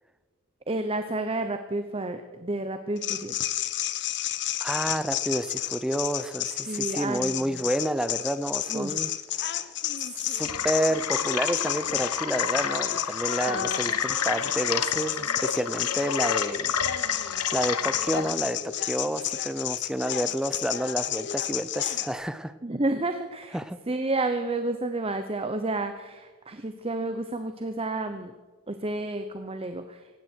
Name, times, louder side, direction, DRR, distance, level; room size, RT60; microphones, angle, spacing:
voice 1, 0.7-3.4 6.7-7.6 8.7-9.1 13.5-14.0 22.6-23.6 23.9-28.3 28.7-30.0, right 2 dB, 25° right, 8 dB, 0.9 m, -31 dB
sound 1, 3.0-22.1, left 11 dB, 50° left, 0.9 m, -31 dB
voice 2, 4.6-9.1 9.4-9.7 10.3-22.5 23.5-23.8, equal, 5° right, 12 dB, 0.6 m, -30 dB
sound 2, 10.4-18.3, left 7 dB, 85° left, 1.1 m, -30 dB
18.5 x 16.0 x 4.6 m, 1.4 s
head